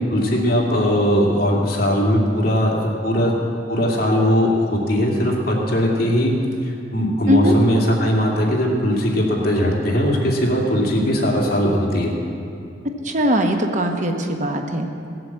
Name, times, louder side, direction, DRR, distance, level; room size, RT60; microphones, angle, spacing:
voice 1, 0.1-3.3 3.7-6.3 6.6-12.1, equal, 50° left, -2 dB, 2.6 m, -19 dB
voice 2, 13.0-15.1, equal, 40° right, 4 dB, 1.0 m, -20 dB
17.5 x 7.8 x 7.4 m, 2.5 s
head